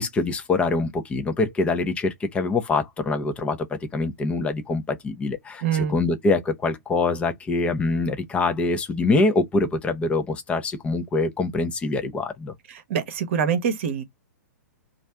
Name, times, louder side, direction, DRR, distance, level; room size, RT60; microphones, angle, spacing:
voice 1, 0.0-12.5, left 3 dB, 15° left, 0.8 m, -24 dB
voice 2, 5.6-6.0 12.7-14.0, right 7 dB, 45° right, 1.0 m, -25 dB
3.2 x 2.6 x 4.4 m
figure-of-eight pair, 110°, 9 cm